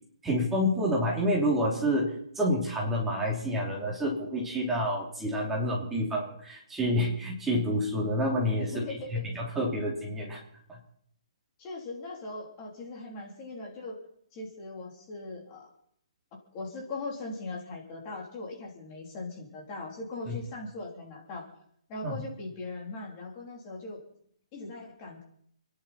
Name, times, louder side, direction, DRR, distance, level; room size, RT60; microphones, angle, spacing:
voice 1, 0.2-8.7 9.1-10.4 20.3-20.4 22.0-22.2, equal, 5° right, -3 dB, 3.1 m, -28 dB
voice 2, 8.6-9.3 11.6-14.0 14.3-15.7 16.5-21.5 21.9-24.0 24.5-25.2, left 3 dB, 25° left, -1 dB, 3.4 m, -40 dB
29.5 x 11.0 x 4.3 m, 0.67 s
hypercardioid pair, 165°, 3 cm